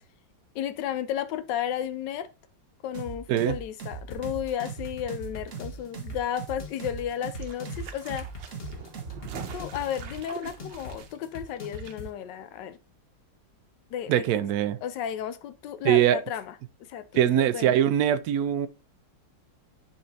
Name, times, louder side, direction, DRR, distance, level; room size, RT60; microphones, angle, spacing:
voice 1, 0.5-2.3 2.8-8.3 9.5-12.8 13.9-14.3 14.8-16.5 16.8-17.8, left 10 dB, 75° left, 1.2 m, -33 dB
sound 1, 2.9-9.7, right 6 dB, 50° right, 1.3 m, -39 dB
sound 2, 4.1-12.1, left 2 dB, 35° left, 1.4 m, -42 dB
sound 3, 7.1-11.9 12.2-12.3, right 7 dB, 90° right, 1.5 m, -44 dB
voice 2, 14.1-14.8 15.8-16.2 17.1-18.7, right 11 dB, 75° right, 0.9 m, -22 dB
10.5 x 4.3 x 2.7 m
omnidirectional pair, 2.0 m